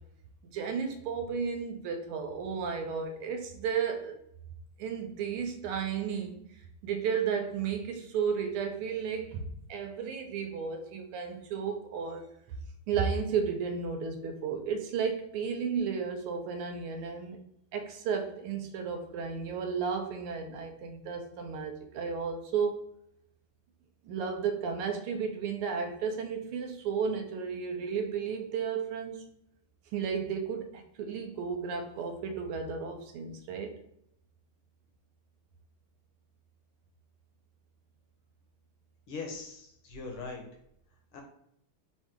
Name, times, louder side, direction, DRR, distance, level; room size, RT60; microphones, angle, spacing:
voice 1, 0.5-4.2 4.8-12.3 12.9-17.4 17.7-22.9 24.0-29.2 29.9-33.8, right 6 dB, 90° right, 4 dB, 1.6 m, -33 dB
voice 2, 39.1-40.4 41.1-41.2, left 4 dB, 75° left, 2 dB, 1.7 m, -40 dB
4.4 x 2.6 x 3.6 m, 0.74 s
omnidirectional pair, 2.4 m